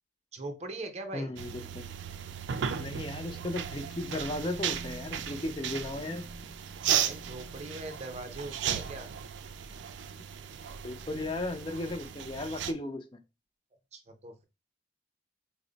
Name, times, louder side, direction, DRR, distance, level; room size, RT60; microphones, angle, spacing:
voice 1, 0.3-1.3 7.0-9.1 13.9-14.4, right 2 dB, 35° right, 7 dB, 0.6 m, -41 dB
voice 2, 1.1-1.9 2.8-6.3 10.8-13.2, left 2 dB, 25° left, 7 dB, 0.4 m, -36 dB
sound 1, 1.4-12.7, right 8 dB, 80° right, 0.4 m, -36 dB
4.0 x 2.0 x 3.8 m, 0.27 s
head